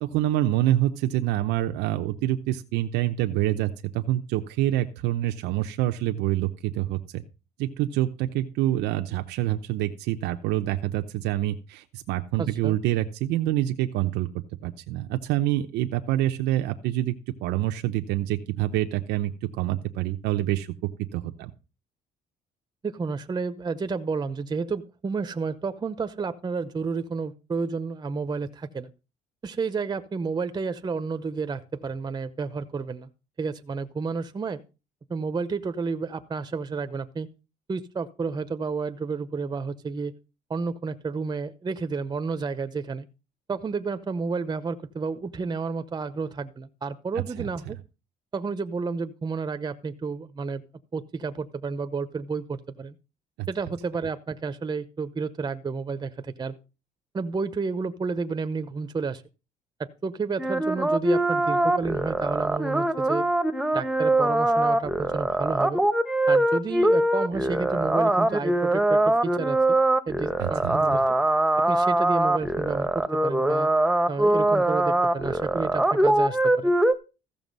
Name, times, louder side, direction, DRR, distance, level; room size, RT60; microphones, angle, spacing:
voice 1, 0.0-7.2 7.6-14.3 14.6-17.1 17.4-20.7 21.1-21.5 47.4-47.5 53.4-53.5 70.4-70.8, right 14 dB, 85° right, 6 dB, 0.8 m, -26 dB
voice 2, 12.4-12.8 22.8-28.9 29.4-33.1 33.4-34.6 35.1-37.3 37.7-40.1 40.5-43.1 43.5-47.8 48.3-50.6 50.9-52.9 53.5-56.6 57.1-59.2 59.8-63.3 63.7-65.8 66.3-69.8 70.1-71.0 71.6-73.7 74.1-76.7, right 4 dB, 25° right, 11 dB, 0.8 m, -31 dB
sound 1, 60.4-76.9, right 1 dB, 5° right, 1.1 m, -22 dB
14.5 x 7.0 x 5.4 m, 0.32 s
cardioid pair, 110°, 17 cm